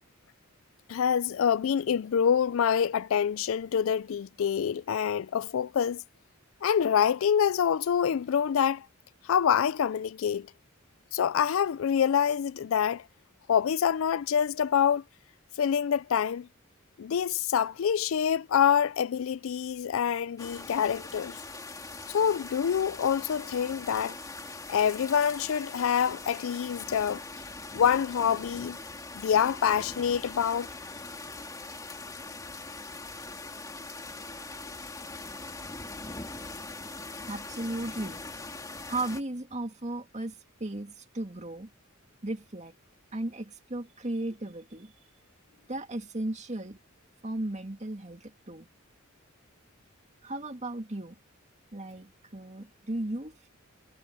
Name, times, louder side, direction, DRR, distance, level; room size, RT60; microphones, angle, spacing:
voice 1, 0.9-6.0 6.6-8.9 9.2-10.5 11.1-13.0 13.5-15.0 15.6-16.5 17.0-21.4 22.1-24.2 24.7-27.2 27.7-28.8 29.2-30.7, left 8 dB, 65° left, 0.4 m, -26 dB
sound 1, 20.4-39.2, left 3 dB, 15° left, 2.4 m, -42 dB
voice 2, 37.2-38.2 38.9-41.7 42.2-42.7 43.1-44.9 45.7-46.8 47.2-48.7 50.2-51.2 51.7-53.5, right 2 dB, 35° right, 2.1 m, -35 dB
head